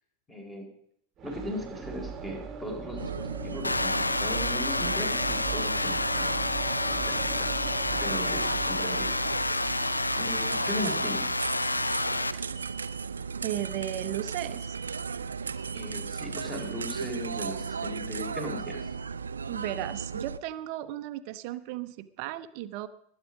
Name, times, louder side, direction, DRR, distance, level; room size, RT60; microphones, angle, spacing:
voice 1, 0.3-0.6 1.2-6.4 6.9-7.5 7.9-9.1 10.2-11.3 15.7-18.9, left 1 dB, 10° left, 3 dB, 4.0 m, -38 dB
sound 1, 1.2-13.0, right 5 dB, 25° right, 1.5 m, -41 dB
sound 2, 3.0-20.4, right 5 dB, 70° right, 0.5 m, -36 dB
sound 3, 3.6-12.3, left 2 dB, 85° left, 0.6 m, -29 dB
voice 2, 13.4-14.8 19.5-22.9, right 13 dB, 45° right, 11 dB, 0.8 m, -35 dB
20.0 x 9.1 x 5.0 m, 0.71 s
figure-of-eight pair, 90°, 0 cm